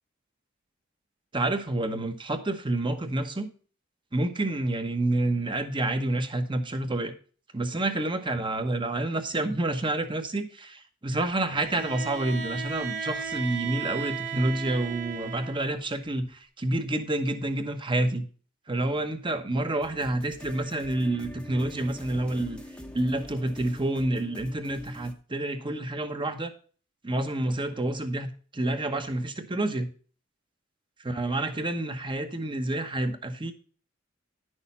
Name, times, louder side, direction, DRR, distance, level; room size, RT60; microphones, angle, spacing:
voice 1, 1.3-3.5 4.1-7.1 7.5-18.3 18.7-22.6 22.9-26.5 27.0-29.9 31.0-33.5, right 2 dB, 25° right, 7 dB, 1.1 m, -28 dB
Bowed string instrument, 11.5-15.8, right 6 dB, 65° right, 2.1 m, -35 dB
sound 1, 19.8-25.1, left 1 dB, 5° left, 0.9 m, -45 dB
10.5 x 6.5 x 4.3 m, 0.40 s
head